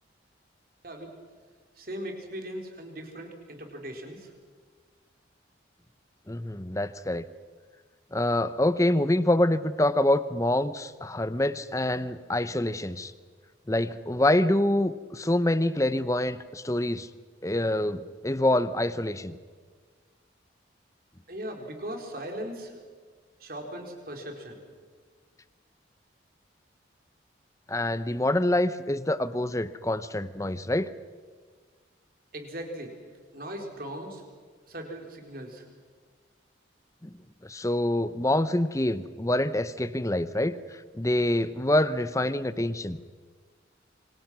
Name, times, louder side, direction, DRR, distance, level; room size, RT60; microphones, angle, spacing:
voice 1, 1.8-4.3 21.3-22.8 23.4-24.6 32.3-32.9 33.3-34.2 34.7-35.7, right 1 dB, 50° right, 3 dB, 4.0 m, -38 dB
voice 2, 6.3-7.3 8.1-13.1 13.7-17.1 17.4-19.4 27.7-30.9 37.0-37.1 37.4-40.6 40.9-43.0, left 1 dB, 15° left, 14 dB, 0.8 m, -26 dB
28.0 x 25.0 x 6.2 m, 1.5 s
head